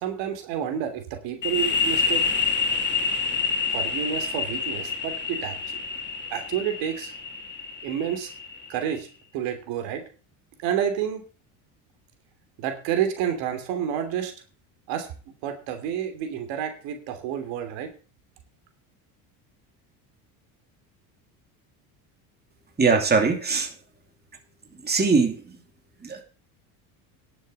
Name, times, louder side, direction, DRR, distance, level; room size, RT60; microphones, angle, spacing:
voice 1, 0.0-2.2 3.7-5.8 6.3-7.1 7.8-8.3 8.7-9.1 9.3-10.0 10.6-11.2 12.6-14.3 14.9-17.9, right 9 dB, 70° right, 6 dB, 3.1 m, -29 dB
sound 1, 1.4-8.9, left 5 dB, 25° left, 3.0 m, -28 dB
voice 2, 22.8-23.7 24.8-25.4 26.0-26.2, right 4 dB, 20° right, 3 dB, 2.8 m, -21 dB
11.0 x 7.3 x 6.8 m, 0.38 s
supercardioid pair, 90°, 45 cm